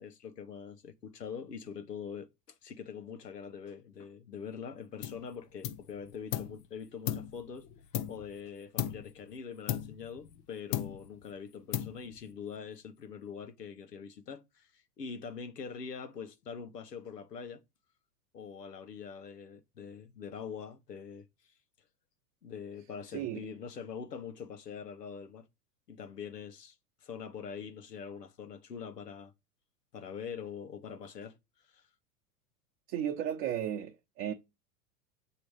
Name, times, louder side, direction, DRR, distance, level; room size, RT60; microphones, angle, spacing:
voice 1, 0.0-2.3 2.6-7.7 8.1-17.6 18.3-21.3 22.4-25.5 25.9-26.7 27.0-29.3 29.9-31.4 31.7-31.8, left 6 dB, 85° left, 1.1 m, -44 dB
sound 1, 5.0-5.3 5.6-6.6 7.1-8.4 8.8-9.2 9.7-10.4 10.7-11.2 11.7-12.3, left 11 dB, 30° left, 0.4 m, -36 dB
voice 2, 32.9-34.3, right 10 dB, 40° right, 0.9 m, -34 dB
7.3 x 3.0 x 4.7 m
hypercardioid pair, 95°, 47 cm